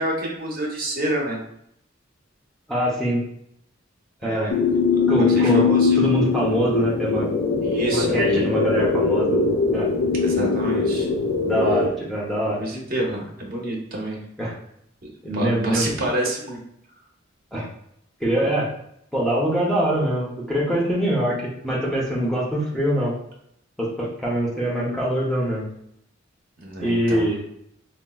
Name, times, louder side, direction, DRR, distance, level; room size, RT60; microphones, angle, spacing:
voice 1, 0.0-1.4 4.2-4.5 5.1-6.1 7.6-8.4 10.2-11.1 12.5-14.2 15.3-16.6 26.6-27.3, right 1 dB, 45° right, -2 dB, 0.8 m, -28 dB
voice 2, 2.7-3.2 4.2-4.5 5.1-5.7 6.0-7.3 7.9-9.5 9.7-9.9 11.4-12.6 14.4-14.5 15.2-15.9 17.5-17.7 18.2-18.7 19.1-23.1 23.8-25.7 26.8-27.4, right 1 dB, ahead, -5 dB, 0.6 m, -23 dB
sound 1, 4.5-11.9, left 4 dB, 50° left, 0.4 m, -21 dB
4.0 x 2.1 x 2.2 m, 0.73 s
head